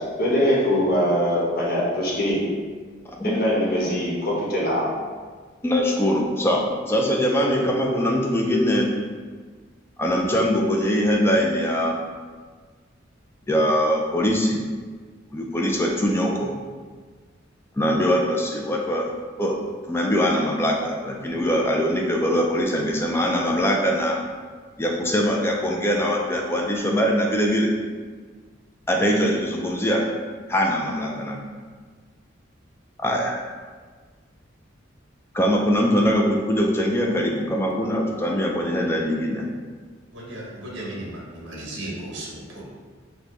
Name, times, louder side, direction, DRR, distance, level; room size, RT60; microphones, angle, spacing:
voice 1, 0.0-2.4 3.2-4.8, equal, 50° left, -6 dB, 0.9 m, -22 dB
voice 2, 3.1-3.4 5.6-8.9 10.0-12.0 13.5-14.6 15.3-16.5 17.8-19.6 19.9-24.2 24.8-27.7 28.9-30.1 30.5-31.4 33.0-33.4 35.3-39.5, equal, 10° left, 0 dB, 0.3 m, -22 dB
voice 3, 40.1-42.6, right 1 dB, 65° right, -3 dB, 0.8 m, -35 dB
4.2 x 2.2 x 3.0 m, 1.5 s
head